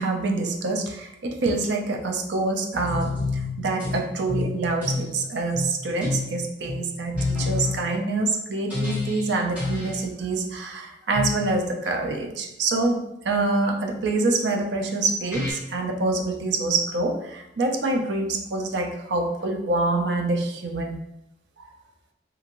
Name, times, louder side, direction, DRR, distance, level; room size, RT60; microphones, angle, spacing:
voice 1, 0.0-13.0 13.2-21.0 21.6-21.7, right 2 dB, 75° right, 3 dB, 0.4 m, -26 dB
sound 1, 2.7-4.0 4.3-5.1 5.5-5.7 6.0-6.3 6.6-6.8 7.1-7.8 8.7-9.3 9.6-10.0 11.1-11.4 14.8-14.9 15.3-15.5, left 3 dB, 10° right, 1.0 m, -28 dB
2.9 x 2.7 x 2.5 m, 0.86 s
head